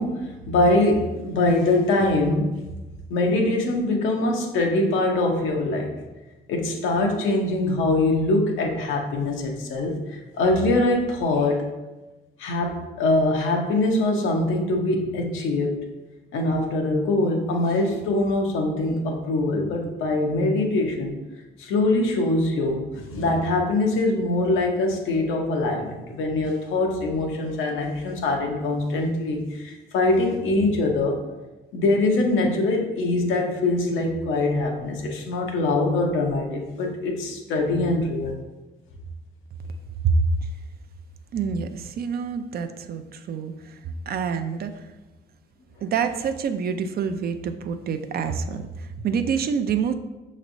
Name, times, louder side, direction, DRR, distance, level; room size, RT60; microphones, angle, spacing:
voice 1, 0.0-2.6 3.1-6.0 6.5-11.7 12.4-15.8 16.3-21.2 21.6-31.2 31.7-38.4, left 2 dB, 85° left, 1 dB, 0.8 m, -23 dB
voice 2, 41.3-43.8 44.1-44.8 45.8-49.9, right 6 dB, 50° right, 9 dB, 0.4 m, -26 dB
5.9 x 3.1 x 2.6 m, 1.1 s
cardioid pair, 90°, 20 cm